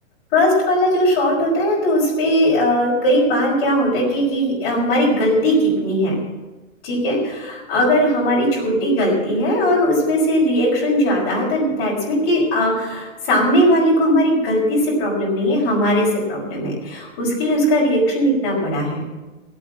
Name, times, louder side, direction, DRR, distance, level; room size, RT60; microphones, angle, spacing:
voice 1, 0.3-6.2 6.8-19.0, equal, 25° left, -6 dB, 5.8 m, -19 dB
16.0 x 9.3 x 7.8 m, 1.1 s
hypercardioid pair, 175°, 38 cm